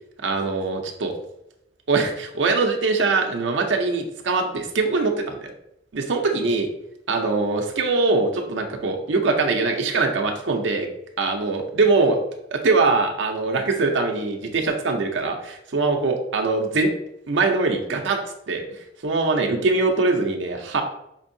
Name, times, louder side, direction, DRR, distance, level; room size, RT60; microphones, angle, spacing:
voice 1, 0.2-1.1 1.9-5.5 5.9-6.7 7.1-10.9 11.2-12.2 12.5-16.9 17.3-18.2 18.5-20.8, right 3 dB, 90° right, 3 dB, 0.5 m, -22 dB
5.1 x 2.7 x 2.6 m, 0.81 s
head